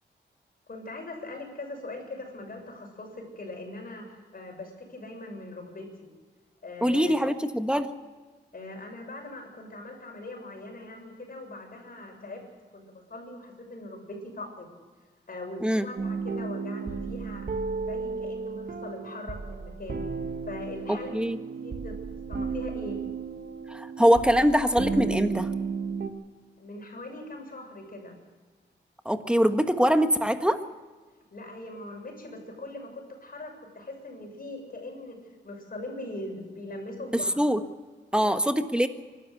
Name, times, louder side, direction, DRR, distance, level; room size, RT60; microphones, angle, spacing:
voice 1, 0.7-4.0 4.3-6.1 6.6-7.3 8.5-12.4 12.7-14.7 15.3-17.5 17.8-20.1 20.5-21.2 21.5-21.9 22.3-23.0 26.6-28.2 31.3-35.2 35.4-37.4 38.1-38.4, left 2 dB, 50° left, 2 dB, 6.9 m, -41 dB
voice 2, 6.8-7.9 15.6-15.9 20.9-21.4 23.7-25.5 29.0-30.6 37.1-37.6 38.1-38.9, equal, 5° right, 8 dB, 1.5 m, -23 dB
sound 1, 16.0-26.1, right 5 dB, 55° right, 2.0 m, -33 dB
24.5 x 13.0 x 8.3 m, 1.4 s
cardioid pair, 70°, 19 cm